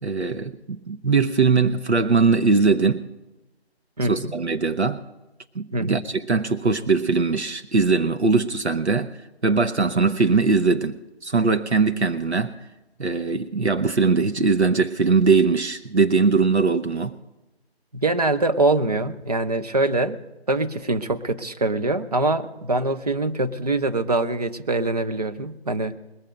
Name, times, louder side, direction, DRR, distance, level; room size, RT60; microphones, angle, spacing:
voice 1, 0.0-3.0 4.1-5.0 5.5-9.1 9.4-12.6 13.0-17.1, right 4 dB, 85° right, 6 dB, 0.9 m, -21 dB
voice 2, 4.0-4.4 5.7-6.0 17.9-20.2 20.5-25.9, right 2 dB, 40° right, 8 dB, 0.7 m, -24 dB
21.5 x 7.4 x 5.1 m, 1.0 s
figure-of-eight pair, 155°, 33 cm